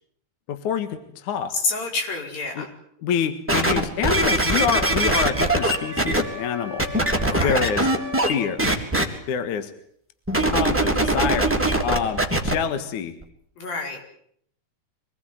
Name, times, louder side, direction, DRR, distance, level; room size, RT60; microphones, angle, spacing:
voice 1, 0.5-1.5 2.6-2.7 3.0-6.9 7.4-7.9 8.3-8.6 9.3-9.7 10.5-11.5 11.8-13.2, left 7 dB, 65° left, 9 dB, 2.9 m, -26 dB
voice 2, 1.5-2.7 7.2-7.7 13.6-14.0, left 3 dB, 90° left, 2 dB, 6.7 m, -28 dB
sound 1, 3.5-6.2 6.8-8.3 8.6-9.0 10.3-12.5 13.2-13.3, right 1 dB, 5° right, 2.9 m, -21 dB
Wind instrument woodwind instrument, 4.8-8.6, left 3 dB, 25° left, 6.9 m, -36 dB
25.5 x 20.0 x 9.3 m, 0.67 s
omnidirectional pair, 4.0 m